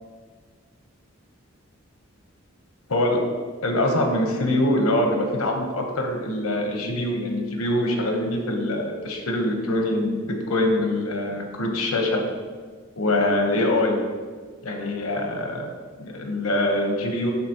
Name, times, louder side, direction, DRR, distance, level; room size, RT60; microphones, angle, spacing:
voice 1, 2.9-3.2 3.6-12.2 13.0-14.0 14.6-15.7 16.0-17.3, left 1 dB, 90° left, 3 dB, 1.1 m, -24 dB
11.5 x 4.1 x 3.0 m, 1.5 s
head